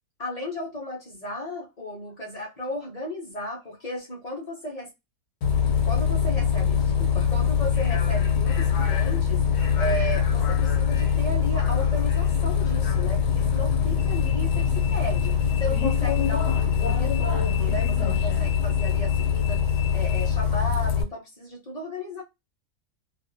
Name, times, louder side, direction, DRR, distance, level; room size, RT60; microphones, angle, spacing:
voice 1, 0.2-4.9 5.8-19.6 19.9-22.2, equal, 50° left, 0.5 m, -35 dB
Bus, 5.4-21.0, left 7 dB, 80° left, 1.1 m, -23 dB
2.5 x 2.5 x 2.5 m
omnidirectional pair, 1.7 m